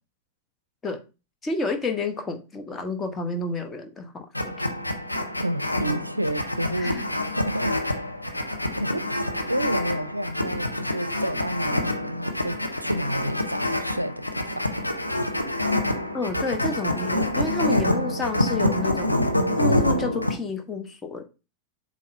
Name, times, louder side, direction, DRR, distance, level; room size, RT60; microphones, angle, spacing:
voice 1, 1.4-4.6 6.8-7.0 16.1-19.2 19.6-21.3, left 3 dB, 20° left, 1.0 m, -30 dB
sound 1, 4.3-20.4, left 1 dB, 90° left, 0.7 m, -26 dB
voice 2, 5.4-8.1 8.8-9.1 9.5-14.7, right 1 dB, 85° right, 0.4 m, -30 dB
7.5 x 2.6 x 5.3 m
figure-of-eight pair, 90°, 0 cm